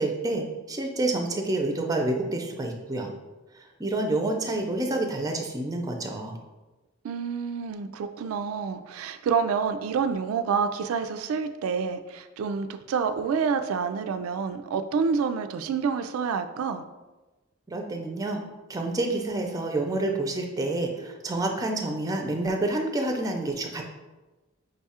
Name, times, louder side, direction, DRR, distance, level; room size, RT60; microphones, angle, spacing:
voice 1, 0.0-3.1 3.8-6.4 17.7-18.4 18.7-23.8, right 2 dB, 15° right, 3 dB, 0.5 m, -28 dB
voice 2, 7.0-16.8, right 6 dB, 90° right, 9 dB, 0.3 m, -28 dB
5.1 x 2.4 x 4.2 m, 1.1 s
head